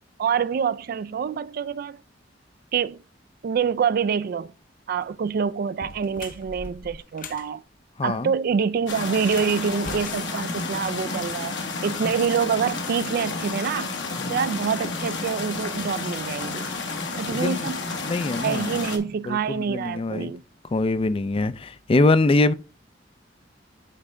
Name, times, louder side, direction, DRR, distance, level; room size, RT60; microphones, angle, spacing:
voice 1, 0.2-2.0 2.7-3.0 3.4-4.5 4.9-7.6 8.0-11.5 11.8-13.9 14.3-16.7 17.2-17.8 18.4-20.4, right 6 dB, 55° right, 0.3 m, -26 dB
sound 1, 4.9-5.1 5.7-7.5 9.2-11.2, left 4 dB, 50° left, 0.8 m, -41 dB
voice 2, 8.0-8.3 14.2-14.3 17.3-17.7 18.0-18.7 19.3-20.3 20.7-22.5, left 2 dB, 30° left, 0.4 m, -23 dB
sound 2, 8.9-19.0, left 3 dB, 70° left, 1.4 m, -31 dB
9.8 x 3.3 x 3.6 m
head